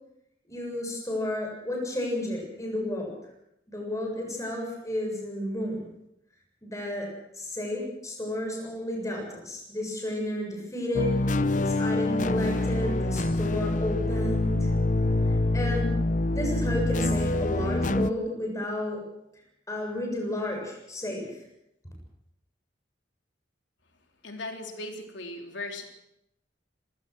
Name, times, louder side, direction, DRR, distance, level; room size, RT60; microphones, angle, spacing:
voice 1, 0.5-3.1 3.7-5.8 6.6-7.1 7.3-11.2 11.5-14.7 15.3-16.0 16.3-19.0 19.7-21.4, left 1 dB, 15° left, 0 dB, 7.3 m, -32 dB
sound 1, 10.9-18.1, left 2 dB, 45° left, 0.7 m, -26 dB
voice 2, 24.2-25.8, left 2 dB, 85° left, 3 dB, 3.6 m, -37 dB
25.5 x 17.0 x 6.3 m, 0.79 s
head